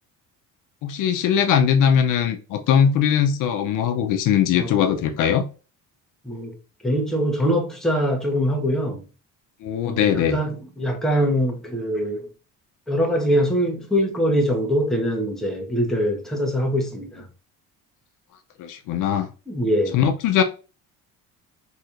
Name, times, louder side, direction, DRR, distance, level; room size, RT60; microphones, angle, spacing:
voice 1, 0.8-5.5 9.6-10.4 18.6-19.3 19.9-20.4, left 8 dB, 65° left, 0.6 m, -20 dB
voice 2, 4.6-5.1 6.2-6.5 6.8-9.0 9.8-12.3 12.9-17.3 19.5-20.0, equal, ahead, 0.9 m, -23 dB
4.1 x 2.9 x 2.5 m
cardioid pair, 115°, 34 cm